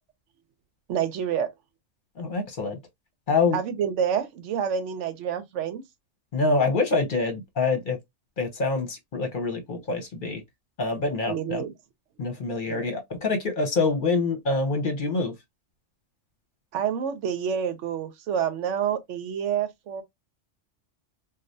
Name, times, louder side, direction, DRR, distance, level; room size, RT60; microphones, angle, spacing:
voice 1, 0.9-1.5 3.5-5.8 11.3-11.7 12.7-12.8 16.7-20.0, right 8 dB, 80° right, 0.9 m, -28 dB
voice 2, 2.2-2.8 3.3-3.6 6.3-8.0 8.4-10.4 10.8-11.6 12.2-15.3, left 3 dB, 50° left, 0.9 m, -26 dB
3.1 x 2.3 x 2.6 m
omnidirectional pair, 1.2 m